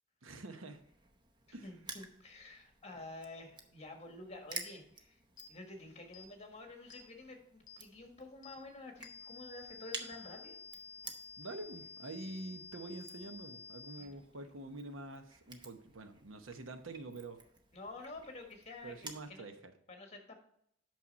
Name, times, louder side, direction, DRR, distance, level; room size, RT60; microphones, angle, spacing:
voice 1, 0.2-0.8 1.5-1.7 11.4-17.4 18.8-19.7, right 2 dB, 85° right, 8 dB, 0.9 m, -46 dB
Crushing, 0.7-19.3, right 3 dB, 25° right, 0.8 m, -53 dB
voice 2, 1.6-5.2 5.5-10.6 14.0-14.1 17.7-19.5 19.9-20.4, left 2 dB, 30° left, 3 dB, 1.4 m, -50 dB
sound 1, 5.4-5.5 6.1-6.3 6.9-7.1 7.7-7.8 8.4-8.6 9.0-14.0, left 5 dB, 75° left, 0.7 m, -51 dB
8.6 x 6.1 x 4.1 m, 0.71 s
head